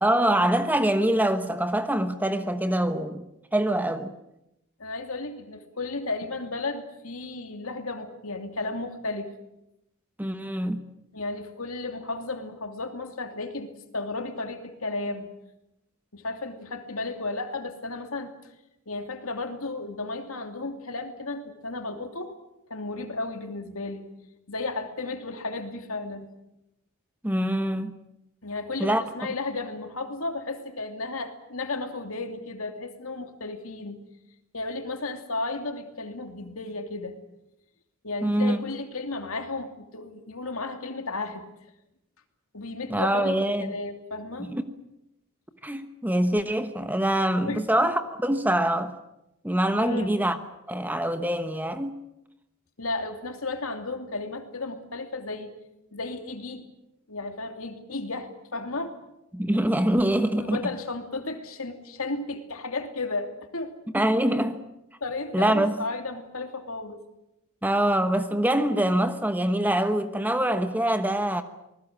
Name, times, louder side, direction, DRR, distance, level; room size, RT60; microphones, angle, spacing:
voice 1, 0.0-3.2 3.5-4.1 10.2-10.8 27.2-28.0 28.8-29.0 38.2-38.6 42.9-43.7 44.5-44.6 45.6-48.9 49.4-50.4 50.7-51.9 59.3-60.6 63.9-64.6 65.3-65.8 67.6-71.4, right 1 dB, 10° right, 1.1 m, -24 dB
voice 2, 4.8-9.3 11.1-15.3 16.1-18.3 18.9-22.4 22.7-24.1 24.5-26.3 28.4-34.0 34.5-37.2 38.0-41.5 42.5-44.5 47.4-47.6 49.8-50.2 52.8-55.5 55.9-56.7 57.1-58.9 60.3-63.7 65.0-67.0, left 3 dB, 65° left, 2.9 m, -34 dB
27.5 x 20.0 x 7.6 m
head